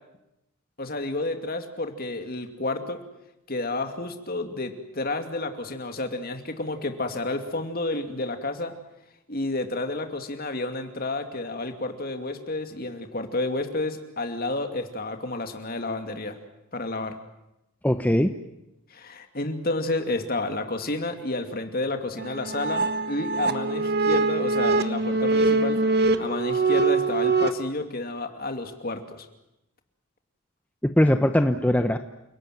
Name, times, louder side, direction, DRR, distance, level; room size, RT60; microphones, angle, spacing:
voice 1, 0.8-3.0 3.5-8.7 9.3-16.4 16.7-17.2 18.9-25.8 26.2-29.3, left 2 dB, 45° left, 6 dB, 2.6 m, -30 dB
voice 2, 17.8-18.3 30.8-32.0, left 1 dB, 5° left, 7 dB, 0.9 m, -20 dB
sound 1, 22.2-27.5, right 3 dB, 50° right, 1.5 m, -23 dB
29.5 x 18.0 x 9.4 m, 0.90 s
head